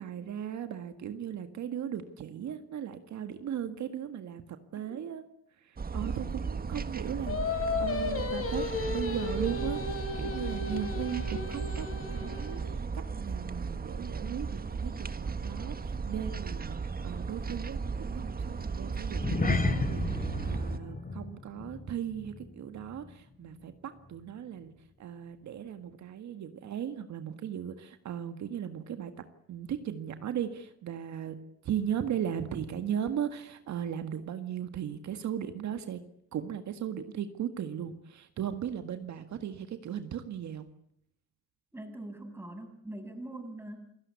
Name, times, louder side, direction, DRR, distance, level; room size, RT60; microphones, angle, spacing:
voice 1, 0.0-4.5 4.7-5.2 5.6-12.8 13.2-24.7 25.0-31.4 31.6-36.0 36.3-40.7, right 9 dB, 65° right, 9 dB, 1.8 m, -37 dB
sound 1, 5.8-20.8, right 5 dB, 30° right, 1.6 m, -35 dB
Singing, 7.3-12.6, left 4 dB, 50° left, 4.8 m, -34 dB
sound 2, 19.1-23.7 24.0-24.3 24.8-24.9, left 3 dB, 30° left, 2.6 m, -34 dB
voice 2, 41.7-43.9, right 1 dB, 10° right, 6 dB, 7.0 m, -43 dB
29.0 x 17.5 x 8.4 m, 0.72 s
cardioid pair, 90°, 30 cm